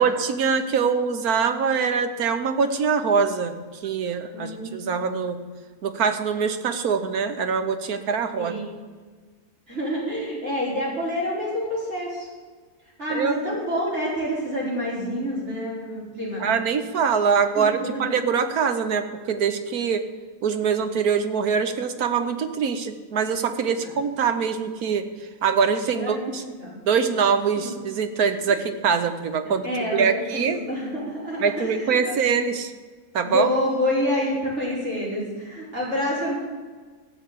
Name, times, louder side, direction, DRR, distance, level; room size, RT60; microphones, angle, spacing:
voice 1, 0.0-3.5 3.8-5.4 5.8-8.5 13.1-13.4 16.4-20.1 20.4-25.1 25.4-26.4 26.9-30.6 31.4-32.7 33.1-33.5, right 6 dB, 80° right, 9 dB, 1.5 m, -23 dB
voice 2, 4.3-4.8 8.4-8.7 9.7-12.3 13.0-16.4 17.5-18.1 23.8-23.9 25.9-26.8 27.6-27.7 28.5-28.6 29.4-32.1 33.2-36.3, equal, 50° right, -6 dB, 5.4 m, -28 dB
14.5 x 7.2 x 8.3 m, 1.4 s
omnidirectional pair, 1.6 m